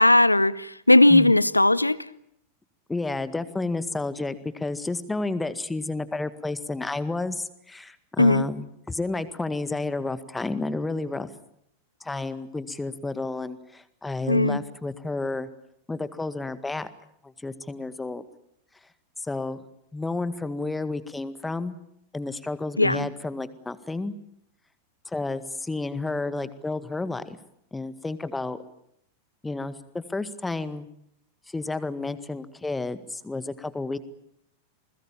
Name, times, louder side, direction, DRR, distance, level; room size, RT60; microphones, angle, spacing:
voice 1, 0.0-2.0 8.2-8.4 14.3-14.6 22.8-23.1, left 2 dB, 85° left, 0.9 m, -18 dB
voice 2, 2.9-11.3 12.0-15.5 15.9-16.9 17.2-18.2 19.2-19.6 19.9-21.8 22.1-24.1 25.1-27.4 27.7-28.6 29.4-30.9 31.5-34.0, left 3 dB, 10° left, 1.8 m, -31 dB
29.0 x 21.0 x 7.4 m
figure-of-eight pair, 90°, 0 cm